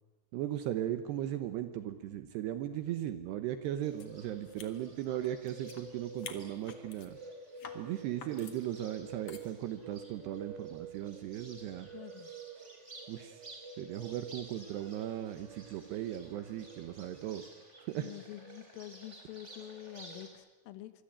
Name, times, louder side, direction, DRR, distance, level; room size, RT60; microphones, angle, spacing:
voice 1, 0.3-7.2 7.7-11.9 13.1-13.5 13.8-17.4 17.8-18.1, right 12 dB, 75° right, 9 dB, 2.6 m, -37 dB
Bird, 3.8-20.3, right 3 dB, 15° right, 3.9 m, -50 dB
sound 1, 4.0-4.1 4.4-5.8 6.1-7.1 7.6-7.8 8.2-8.6 9.3-9.5, left 7 dB, 65° left, 1.6 m, -48 dB
voice 2, 11.9-12.3 18.0-20.9, left 14 dB, 80° left, 11 dB, 4.0 m, -47 dB
25.0 x 23.5 x 8.8 m, 1.2 s
omnidirectional pair, 5.8 m